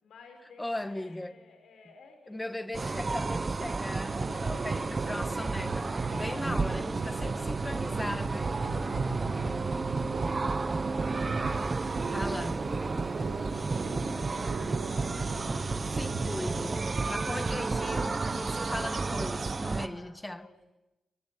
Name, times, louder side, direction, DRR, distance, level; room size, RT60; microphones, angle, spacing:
voice 1, 0.0-2.8 4.1-5.3 6.1-7.4 8.3-15.8 17.5-17.9 19.6-20.7, left 4 dB, 85° left, 5.2 m, -55 dB
voice 2, 0.6-1.3 2.3-8.5 12.1-12.6 15.8-16.8 17.0-20.5, left 1 dB, 10° left, 1.5 m, -38 dB
sound 1, 2.7-19.9, right 3 dB, 30° right, 1.2 m, -32 dB
sound 2, 4.1-18.2, right 4 dB, 85° right, 4.3 m, -39 dB
sound 3, 11.4-19.6, right 5 dB, 65° right, 5.1 m, -52 dB
25.5 x 24.5 x 9.4 m
wide cardioid pair, 110°, 0 cm